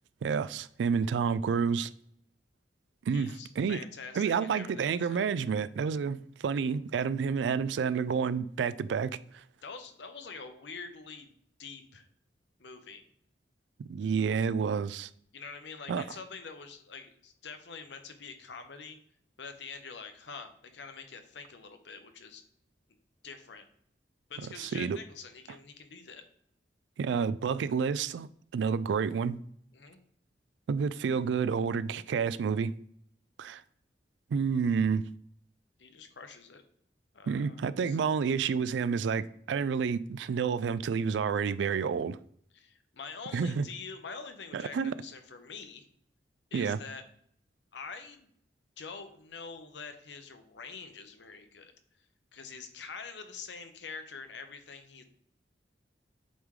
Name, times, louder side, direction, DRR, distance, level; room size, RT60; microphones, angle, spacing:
voice 1, 0.2-1.9 3.1-3.8 4.1-9.4 13.9-15.1 15.9-16.0 24.6-25.0 27.0-28.3 28.5-29.4 30.7-32.7 33.4-33.6 34.3-35.0 37.3-42.2 43.3-43.7 44.5-44.9 46.5-46.8, right 6 dB, 75° right, 0.3 m, -29 dB
voice 2, 3.1-5.2 9.6-11.3 11.6-12.1 12.6-13.0 15.3-19.0 19.4-22.4 23.2-23.7 24.3-26.2 29.7-30.0 35.8-36.6 37.1-37.6 37.9-38.0 42.5-45.8 46.5-47.0 47.7-48.3 48.8-51.7 52.3-55.0, left 5 dB, 75° left, 0.8 m, -45 dB
8.0 x 3.7 x 3.2 m
head